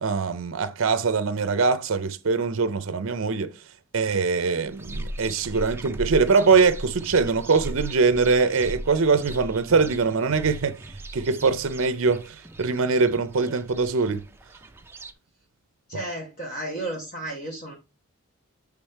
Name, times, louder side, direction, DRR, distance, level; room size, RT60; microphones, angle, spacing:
voice 1, 0.0-3.5 3.9-10.8 11.1-14.2, right 4 dB, 60° right, 0.5 m, -22 dB
sound 1, 4.7-15.1, right 1 dB, 10° right, 0.4 m, -38 dB
voice 2, 15.9-17.7, right 1 dB, 35° left, 1.2 m, -33 dB
8.1 x 3.6 x 4.5 m
head